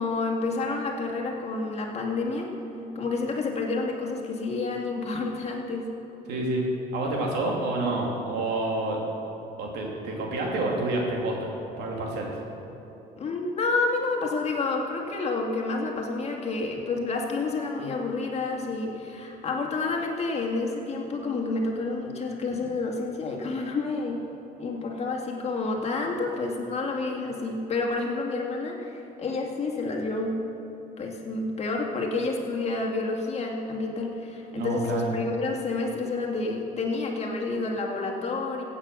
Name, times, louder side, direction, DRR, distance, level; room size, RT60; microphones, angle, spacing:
voice 1, 0.0-2.5 3.0-5.8 13.2-24.2 24.6-30.4 31.0-38.6, left 3 dB, 40° left, 0 dB, 2.2 m, -29 dB
voice 2, 6.3-6.6 6.9-9.0 9.6-12.3 34.6-35.1, right 2 dB, 80° right, -1 dB, 2.7 m, -28 dB
15.5 x 8.8 x 6.3 m, 3.0 s
cardioid pair, 110°, 17 cm